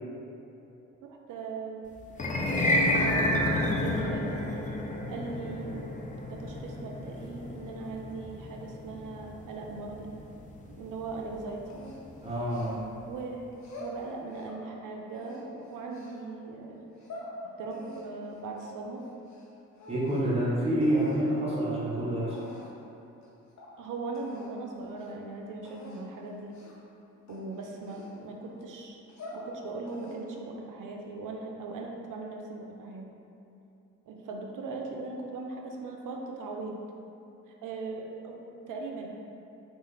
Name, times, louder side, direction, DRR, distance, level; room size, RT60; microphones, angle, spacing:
voice 1, 1.0-1.9 2.5-4.4 5.1-5.8 6.3-10.1 10.7-11.8 13.1-16.9 17.6-19.0 23.8-26.6 27.3-29.0 29.3-33.1 34.1-36.8 37.5-39.1, right 3 dB, 60° right, 1 dB, 0.6 m, -39 dB
sound 1, 2.1-12.4, left 1 dB, 20° left, 0.5 m, -31 dB
sound 2, 11.7-13.0 13.5-14.6 15.1-16.2 16.8-17.3 17.7-19.5 19.7-20.4 20.8-21.2 21.9-22.0 22.3-22.8 23.2-23.3 23.6-23.7 24.1-24.5 24.9-25.1 25.6-26.0 26.5-26.8 27.3-28.5 28.9-29.5 29.9-30.4, left 1 dB, 50° left, 0.8 m, -46 dB
voice 2, 12.2-12.8 19.9-22.4, right 1 dB, 15° right, -8 dB, 1.0 m, -27 dB
3.4 x 2.5 x 3.2 m, 2.8 s
hypercardioid pair, 45°, 36 cm